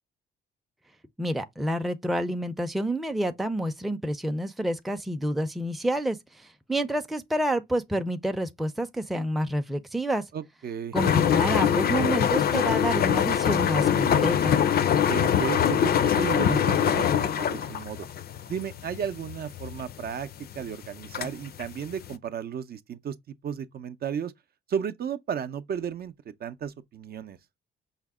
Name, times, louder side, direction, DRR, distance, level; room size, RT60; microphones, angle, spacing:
voice 1, 1.2-10.2 10.9-14.6, right 1 dB, ahead, 0.5 m, -28 dB
voice 2, 10.3-11.0 15.1-18.1 18.5-20.3 20.5-24.3 24.7-26.1 26.4-27.4, right 8 dB, 50° right, 0.5 m, -34 dB
sound 1, 11.0-22.2, left 9 dB, 50° left, 0.5 m, -24 dB
5.6 x 2.1 x 3.5 m
cardioid pair, 90°, 20 cm